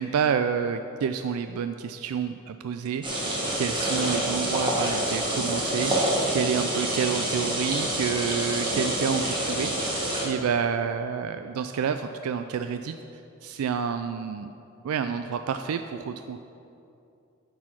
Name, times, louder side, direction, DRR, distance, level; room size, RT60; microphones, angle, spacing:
voice 1, 0.0-13.0 13.4-14.5 14.8-16.4, right 7 dB, 85° right, 8 dB, 0.3 m, -29 dB
sound 1, 3.0-10.2, right 1 dB, 20° right, 1.4 m, -27 dB
10.0 x 4.8 x 5.8 m, 2.6 s
head